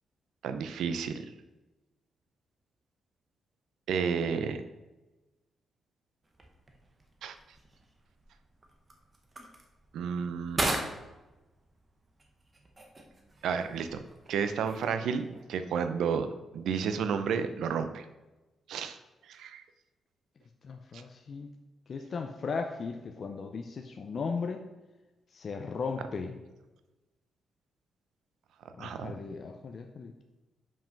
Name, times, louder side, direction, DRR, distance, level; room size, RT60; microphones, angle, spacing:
voice 1, 0.4-1.2 3.9-4.6 7.2-7.3 9.9-10.6 13.4-14.0 14.3-16.3 16.5-18.0 18.7-19.0 19.3-19.6 28.8-29.1, right 6 dB, 85° right, 9 dB, 0.5 m, -31 dB
sound 1, 6.2-15.4, right 2 dB, 20° right, 0.8 m, -40 dB
voice 2, 20.6-21.5 21.9-24.7 25.3-26.4 28.8-30.1, left 5 dB, 40° left, 5 dB, 0.5 m, -36 dB
5.5 x 5.3 x 5.2 m, 1.1 s
wide cardioid pair, 160°, 0 cm